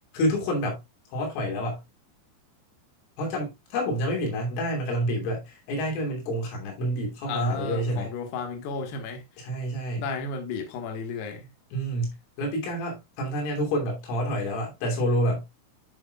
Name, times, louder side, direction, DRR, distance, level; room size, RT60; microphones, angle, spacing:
voice 1, 0.1-0.8 1.1-1.8 3.2-8.1 9.4-10.0 11.7-15.4, equal, 90° left, 5.5 m, -28 dB
voice 2, 7.3-9.2 10.0-11.5, left 4 dB, 65° left, 3.4 m, -33 dB
11.0 x 6.5 x 2.3 m
omnidirectional pair, 5.6 m